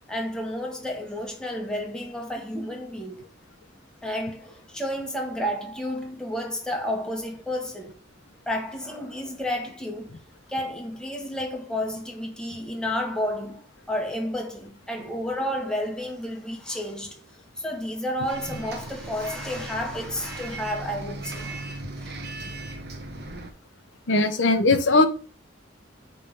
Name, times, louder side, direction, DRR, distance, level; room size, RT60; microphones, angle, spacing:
voice 1, 0.1-3.2 4.0-8.0 8.5-10.1 10.5-13.6 13.9-17.2 17.6-21.7 22.0-22.2, left 1 dB, 5° left, 1.2 m, -31 dB
Bus, 18.3-23.5, right 2 dB, 55° right, 1.0 m, -37 dB
voice 2, 24.1-25.1, left 2 dB, 75° left, 0.8 m, -19 dB
5.4 x 3.4 x 5.4 m
head